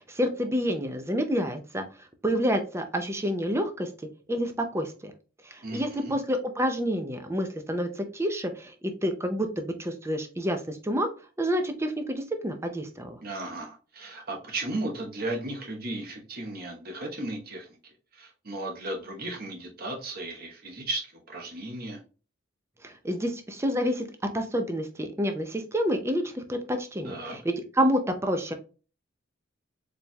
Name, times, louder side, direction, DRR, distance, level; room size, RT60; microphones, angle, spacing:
voice 1, 0.0-1.8 2.2-3.9 4.3-5.1 5.5-11.1 11.4-13.2 22.8-24.1 24.3-28.5, equal, 15° right, 6 dB, 0.5 m, -28 dB
voice 2, 5.6-6.1 13.2-17.7 18.1-22.0 27.0-27.4, right 2 dB, 50° right, 1 dB, 1.1 m, -35 dB
4.3 x 3.3 x 2.3 m, 0.35 s
head